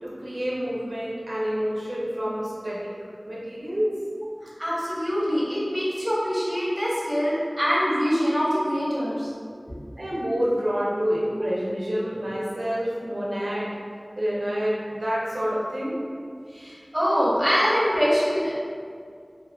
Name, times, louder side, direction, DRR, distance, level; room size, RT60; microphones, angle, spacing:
voice 1, 0.0-2.9 3.2-3.9 10.0-13.7 14.2-16.0, equal, 80° right, -6 dB, 0.5 m, -28 dB
voice 2, 4.4-9.3 16.5-18.5, equal, 15° right, -8 dB, 1.1 m, -24 dB
3.5 x 2.5 x 2.3 m, 2.2 s
wide cardioid pair, 45°, 0 cm